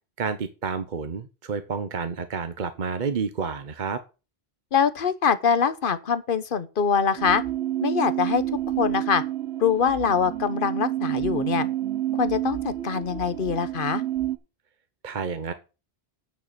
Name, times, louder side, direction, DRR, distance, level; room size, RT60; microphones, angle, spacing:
voice 1, 0.2-4.0 15.0-15.5, right 5 dB, 50° right, 0.9 m, -30 dB
voice 2, 4.7-7.4 7.8-8.4 8.8-9.2 9.6-11.7 12.2-14.0, left 6 dB, 55° left, 1.1 m, -23 dB
sound 1, 7.2-14.4, right 13 dB, 80° right, 1.2 m, -29 dB
9.3 x 6.6 x 6.7 m
omnidirectional pair, 1.1 m